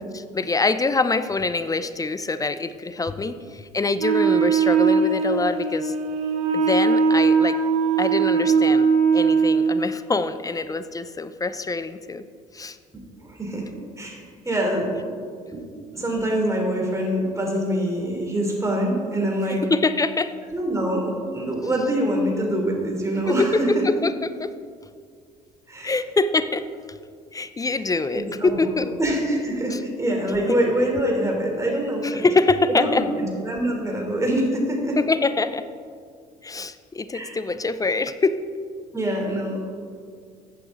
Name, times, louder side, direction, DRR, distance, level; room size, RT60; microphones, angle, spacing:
voice 1, 0.1-6.0 6.5-7.6 8.0-12.2 12.5-12.8 19.6-20.3 23.3-23.8 24.0-24.5 25.8-26.7 27.3-28.9 29.7-29.8 30.5-30.6 32.0-33.0 35.0-35.7 36.4-38.4, left 3 dB, 20° left, 12 dB, 0.5 m, -24 dB
Wind instrument woodwind instrument, 4.0-9.8, right 5 dB, 70° right, 1.2 m, -20 dB
voice 2, 13.2-13.7 14.0-14.9 15.5-19.6 20.5-23.8 25.7-25.9 28.1-32.3 32.7-35.0 37.1-37.4 38.9-39.6, right 1 dB, 15° right, 0 dB, 3.3 m, -25 dB
14.5 x 8.5 x 3.8 m, 2.1 s
figure-of-eight pair, 55°, 19 cm